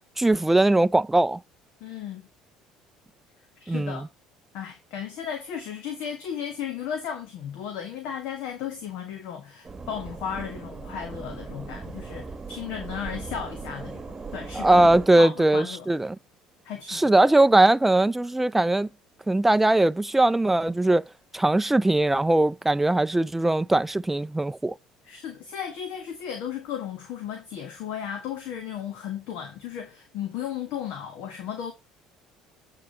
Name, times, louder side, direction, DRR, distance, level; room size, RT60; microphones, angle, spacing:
voice 1, 0.2-1.4 3.7-4.0 14.6-16.2 16.9-18.9 19.3-21.0 21.3-24.7, right 2 dB, 10° right, 0.5 m, -20 dB
voice 2, 1.8-2.3 3.6-4.1 4.5-14.9 15.2-15.9 16.6-17.3 25.0-31.7, left 8 dB, 70° left, 1.6 m, -35 dB
sound 1, 9.6-15.1, right 4 dB, 25° right, 1.2 m, -38 dB
8.4 x 3.8 x 5.2 m
hypercardioid pair, 75°, 2 cm